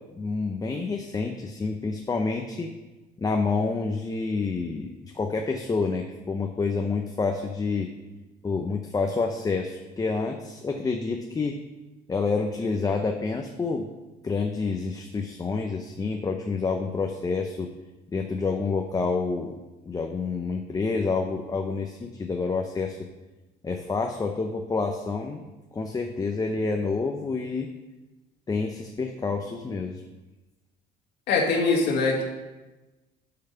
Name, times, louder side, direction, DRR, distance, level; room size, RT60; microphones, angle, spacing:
voice 1, 0.2-2.7 3.2-7.9 8.4-11.6 12.1-13.9 14.2-17.7 18.1-19.6 19.9-23.0 23.6-25.4 25.7-27.7 28.5-30.0, left 4 dB, 20° left, 4 dB, 0.6 m, -28 dB
voice 2, 31.3-32.2, left 3 dB, 85° left, -1 dB, 1.8 m, -22 dB
7.0 x 5.8 x 5.6 m, 1.1 s
cardioid pair, 110°, 17 cm